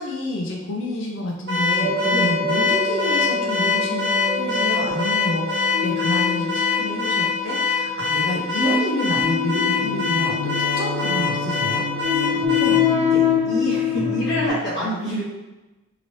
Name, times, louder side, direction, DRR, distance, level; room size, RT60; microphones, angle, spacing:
voice 1, 0.0-11.8, left 1 dB, 80° left, -1 dB, 0.6 m, -29 dB
Car / Alarm, 1.5-12.9, left 5 dB, 65° right, 0.8 m, -23 dB
sound 1, 1.8-14.5, left 4 dB, 20° left, 0.5 m, -25 dB
voice 2, 12.3-12.8 13.1-15.2, equal, 50° left, -10 dB, 0.8 m, -27 dB
2.9 x 2.6 x 3.1 m, 1.1 s
head